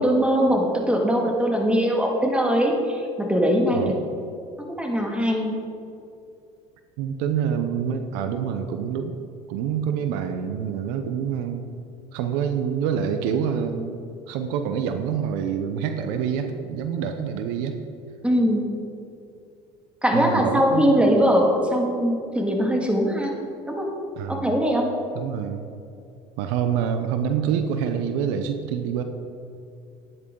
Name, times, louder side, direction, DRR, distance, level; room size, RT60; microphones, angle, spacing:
voice 1, 0.0-4.0 4.6-5.5 18.2-18.7 20.0-23.3 23.7-23.9 24.3-24.9, equal, 5° right, 1 dB, 2.2 m, -21 dB
voice 2, 7.0-9.2 9.5-11.6 12.1-14.0 14.3-17.8 20.1-20.9 24.2-24.6 25.1-25.7 26.4-29.0, right 8 dB, 75° right, 8 dB, 0.8 m, -26 dB
12.0 x 9.8 x 3.9 m, 2.6 s
hypercardioid pair, 80°, 16 cm